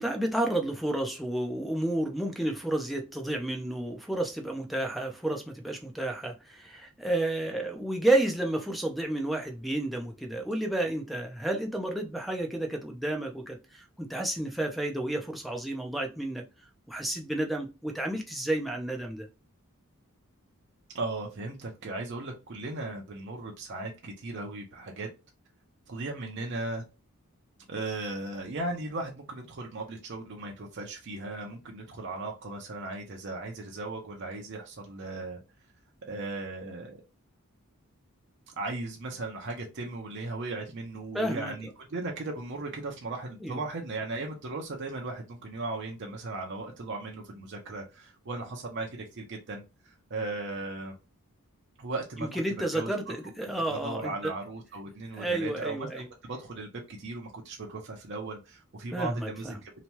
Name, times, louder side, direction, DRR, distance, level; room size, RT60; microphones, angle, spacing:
voice 1, 0.0-16.4 16.9-19.3 41.1-41.5 43.4-43.6 52.2-54.3 55.2-56.1 58.9-59.6, right 1 dB, ahead, 0.4 m, -31 dB
voice 2, 20.9-25.1 25.9-26.8 27.7-35.4 36.1-37.0 38.5-50.9 51.8-52.4 52.7-53.2 53.4-59.7, right 2 dB, 50° right, 0.6 m, -37 dB
2.9 x 2.2 x 2.9 m
head